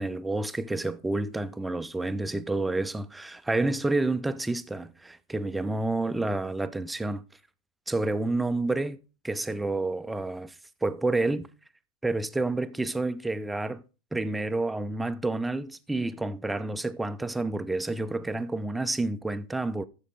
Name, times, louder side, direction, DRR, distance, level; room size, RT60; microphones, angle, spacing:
voice 1, 0.0-7.2 7.9-9.0 9.2-11.5 12.0-13.8 14.1-19.8, right 2 dB, 5° right, 0.5 m, -29 dB
11.0 x 7.3 x 3.8 m
figure-of-eight pair, 90°, 0 cm